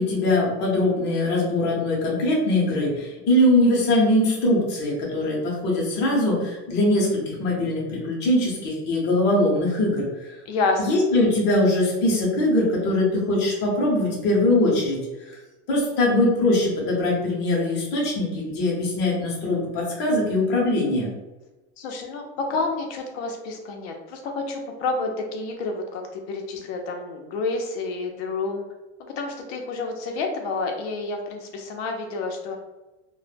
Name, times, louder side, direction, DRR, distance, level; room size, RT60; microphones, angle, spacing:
voice 1, 0.0-10.1 10.8-15.0 15.7-21.1, left 1 dB, 35° left, -3 dB, 0.7 m, -22 dB
voice 2, 10.5-11.0 21.8-28.6 29.0-32.6, left 3 dB, 70° left, 3 dB, 0.6 m, -29 dB
2.1 x 2.0 x 3.2 m, 1.1 s
cardioid pair, 175°, 33 cm